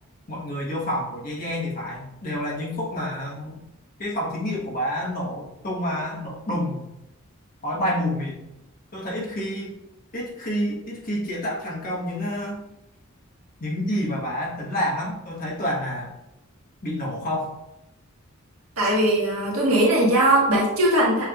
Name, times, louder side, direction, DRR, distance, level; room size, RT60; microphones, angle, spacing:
voice 1, 0.3-3.6 4.0-6.9 7.6-8.4 8.9-9.7 10.1-12.7 13.6-16.1 16.8-17.6, equal, 45° left, -4 dB, 1.3 m, -28 dB
voice 2, 18.8-21.2, right 1 dB, 70° right, -4 dB, 1.6 m, -20 dB
6.9 x 3.2 x 2.4 m, 0.88 s
head